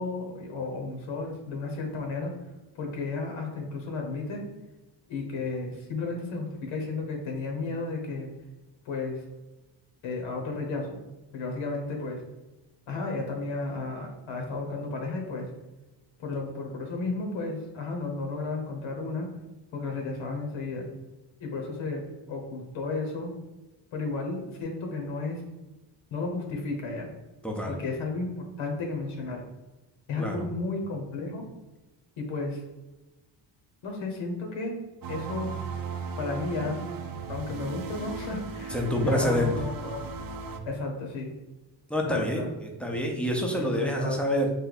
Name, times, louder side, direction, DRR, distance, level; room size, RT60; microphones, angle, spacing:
voice 1, 0.0-2.3 2.7-4.5 5.1-8.3 8.8-9.2 10.0-11.0 11.3-12.2 12.9-15.5 16.2-19.3 19.7-20.9 21.4-22.0 22.3-23.3 23.9-25.4 26.1-27.1 27.7-29.4 30.1-31.5 32.2-32.6 33.8-34.7 35.1-35.5 36.2-36.9 37.3-40.0 40.6-41.3 42.0-42.5 43.5-44.2, left 3 dB, 75° left, 1 dB, 1.1 m, -33 dB
voice 2, 27.4-27.8 30.2-30.5 38.7-39.5 41.9-44.5, equal, ahead, 0 dB, 0.6 m, -27 dB
sound 1, 35.0-40.6, right 5 dB, 50° right, 0.5 m, -36 dB
3.4 x 2.6 x 4.0 m, 1.1 s
cardioid pair, 105°, 47 cm